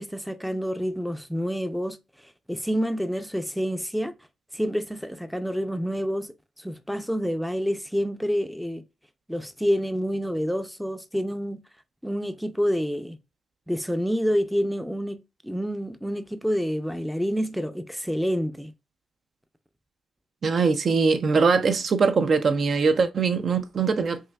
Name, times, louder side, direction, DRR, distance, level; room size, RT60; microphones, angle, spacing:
voice 1, 0.0-2.0 2.2-4.1 4.5-8.8 9.3-11.6 12.0-13.2 13.7-18.7, equal, ahead, 0.5 m, -28 dB
voice 2, 20.4-24.2, right 4 dB, 50° right, 0.5 m, -22 dB
5.6 x 2.5 x 2.3 m
cardioid pair, 70°, 0 cm